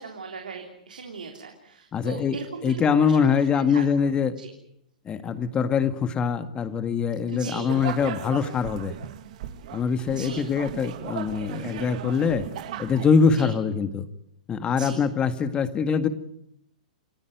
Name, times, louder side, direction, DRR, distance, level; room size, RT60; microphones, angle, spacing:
voice 1, 0.0-4.5 7.3-7.8 9.7-9.8 10.1-10.5 13.3-13.5 14.7-15.0, right 5 dB, 90° right, 2 dB, 3.6 m, -38 dB
voice 2, 1.9-2.4 2.6-4.3 5.1-8.9 9.7-12.5 12.8-14.1 14.5-16.1, left 6 dB, 20° left, 10 dB, 1.8 m, -23 dB
sound 1, 7.7-13.4, right 11 dB, 60° right, 2.4 m, -37 dB
28.5 x 15.0 x 9.4 m, 0.76 s
hypercardioid pair, 125°, 4 cm